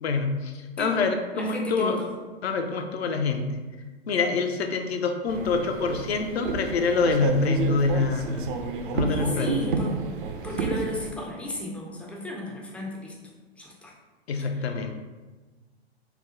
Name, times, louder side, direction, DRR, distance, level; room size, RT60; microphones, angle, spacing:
voice 1, 0.0-2.0 2.4-3.4 4.1-8.5 8.9-9.5 14.3-14.9, left 4 dB, 75° left, 5 dB, 0.6 m, -26 dB
voice 2, 1.3-2.1 9.1-10.0 10.4-13.1 13.6-13.9 14.5-14.7, left 1 dB, 5° left, -2 dB, 0.3 m, -34 dB
sound 1, 5.3-11.1, right 4 dB, 55° right, 0.5 m, -30 dB
4.5 x 2.1 x 3.6 m, 1.3 s
figure-of-eight pair, 105°, 32 cm